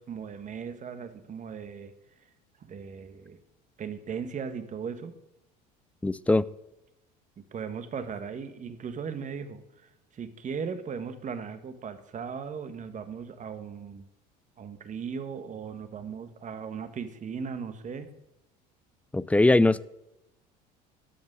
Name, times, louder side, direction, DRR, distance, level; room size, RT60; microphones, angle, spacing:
voice 1, 0.0-1.9 2.6-3.4 3.8-5.1 7.4-14.0 14.6-18.1, right 6 dB, 35° right, 1.3 m, -37 dB
voice 2, 6.0-6.5 19.1-19.8, left 2 dB, 5° left, 0.4 m, -21 dB
13.0 x 5.4 x 6.4 m
supercardioid pair, 85°, 21 cm